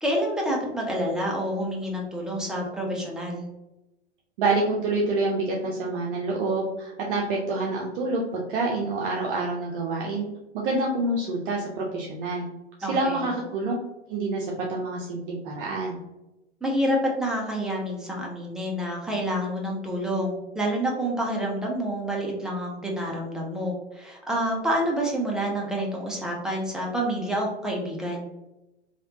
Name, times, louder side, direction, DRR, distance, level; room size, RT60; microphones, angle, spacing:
voice 1, 0.0-3.5 12.8-13.2 16.6-28.2, equal, ahead, -2 dB, 0.6 m, -28 dB
voice 2, 4.4-10.3 10.5-12.5 12.8-13.7 14.1-16.0, right 2 dB, 50° right, -2 dB, 0.7 m, -27 dB
3.3 x 2.5 x 2.7 m, 0.98 s
figure-of-eight pair, 100°, 33 cm